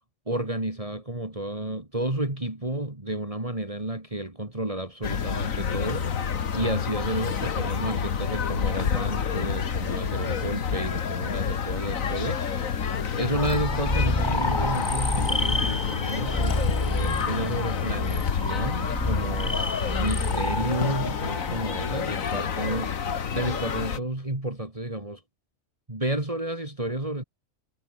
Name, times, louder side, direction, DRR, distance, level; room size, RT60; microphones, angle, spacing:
voice 1, 0.3-25.2 25.9-27.2, right 1 dB, 25° right, 3.3 m, -31 dB
sound 1, 5.0-24.0, left 7 dB, 80° left, 1.8 m, -29 dB
sound 2, 13.3-23.0, left 1 dB, 20° left, 2.6 m, -29 dB
omnidirectional pair, 1.4 m